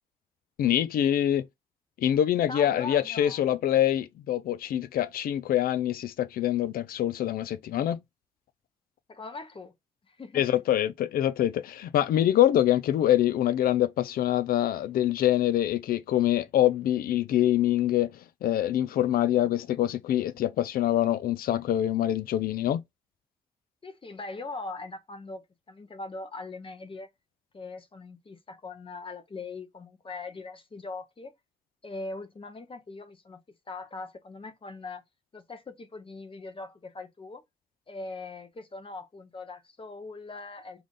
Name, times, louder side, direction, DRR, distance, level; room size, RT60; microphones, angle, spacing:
voice 1, 0.6-1.4 2.0-8.0 10.3-18.1 18.4-22.8, left 12 dB, 70° left, 0.4 m, -25 dB
voice 2, 2.5-3.4 9.1-9.7 10.1-10.6 23.8-27.1 27.5-31.3 31.8-33.4 33.7-35.0 35.3-37.4 37.9-40.8, left 3 dB, 35° left, 0.8 m, -41 dB
4.9 x 2.6 x 3.7 m
supercardioid pair, 50°, 16 cm